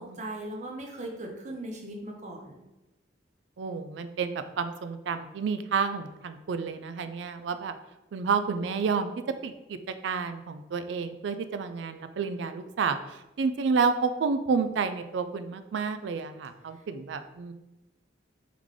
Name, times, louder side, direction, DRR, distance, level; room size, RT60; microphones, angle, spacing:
voice 1, 0.0-2.6 16.7-16.8, right 1 dB, 40° right, 0 dB, 0.7 m, -39 dB
voice 2, 3.6-7.7 8.1-9.1 9.4-9.8 10.0-13.0 13.4-17.5, right 5 dB, 75° right, 10 dB, 0.3 m, -30 dB
3.8 x 3.1 x 3.6 m, 0.99 s
head